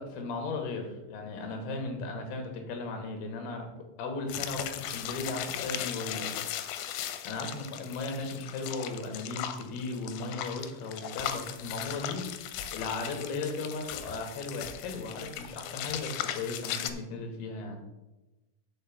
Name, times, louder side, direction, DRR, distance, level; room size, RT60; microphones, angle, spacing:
voice 1, 0.0-3.7 4.0-6.3 7.2-12.3 12.7-17.8, left 3 dB, 65° left, 3 dB, 3.1 m, -36 dB
sound 1, 4.3-16.9, left 11 dB, 85° left, 3.0 m, -38 dB
6.7 x 5.6 x 6.9 m, 1.0 s
omnidirectional pair, 5.2 m